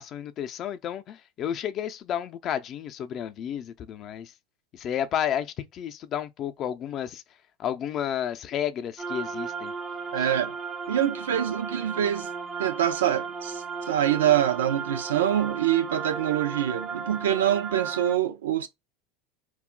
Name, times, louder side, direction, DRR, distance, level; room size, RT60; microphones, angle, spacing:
voice 1, 0.0-4.3 4.7-7.2 7.6-9.7 10.2-10.3, left 9 dB, 45° left, 0.5 m, -31 dB
sound 1, 9.0-18.2, right 5 dB, 20° right, 0.5 m, -35 dB
voice 2, 10.1-10.5 10.9-12.3 12.6-18.7, right 11 dB, 85° right, 0.4 m, -25 dB
2.3 x 2.1 x 3.7 m
hypercardioid pair, 90°, 0 cm